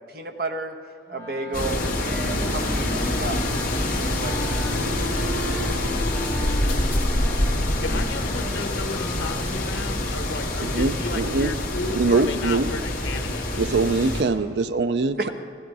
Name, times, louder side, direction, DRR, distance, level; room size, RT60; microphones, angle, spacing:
voice 1, 0.1-0.7 1.1-3.4 4.0-4.6 15.2-15.3, right 2 dB, 55° right, 1.1 m, -31 dB
Wind instrument woodwind instrument, 1.1-9.4, left 1 dB, 20° left, 2.3 m, -36 dB
sound 1, 1.5-14.2, left 1 dB, 50° left, 2.0 m, -26 dB
voice 2, 7.8-13.5, left 3 dB, 90° left, 1.1 m, -33 dB
voice 3, 10.6-11.5 11.9-12.7 13.6-15.3, right 3 dB, 70° right, 0.5 m, -23 dB
16.0 x 12.0 x 4.7 m
head